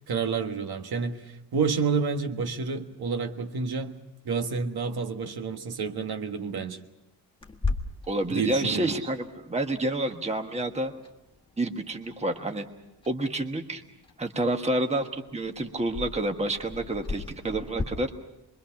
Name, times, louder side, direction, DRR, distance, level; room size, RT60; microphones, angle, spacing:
voice 1, 0.1-1.2 1.5-3.9 4.2-6.8 8.3-8.9, right 5 dB, 60° right, 5 dB, 1.6 m, -29 dB
Clock, 7.4-17.8, left 3 dB, 10° left, 1.5 m, -39 dB
voice 2, 8.1-10.9 11.6-12.7 13.1-13.8 14.2-18.1, right 1 dB, 15° right, 5 dB, 1.3 m, -29 dB
26.5 x 22.5 x 5.9 m, 0.94 s
wide cardioid pair, 145°, 41 cm